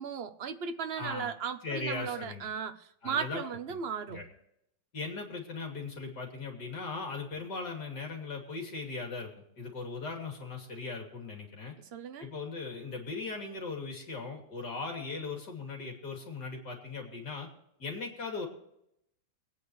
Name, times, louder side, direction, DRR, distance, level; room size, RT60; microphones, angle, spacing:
voice 1, 0.0-4.2 11.9-12.3, right 7 dB, 45° right, 1.0 m, -36 dB
voice 2, 1.0-1.3 1.6-2.5 3.0-3.4 3.7-3.8 4.1-4.3 4.9-9.3 9.6-11.7 12.2-17.5 17.8-18.5, left 4 dB, 70° left, 3.4 m, -38 dB
24.5 x 9.4 x 3.2 m
omnidirectional pair, 1.9 m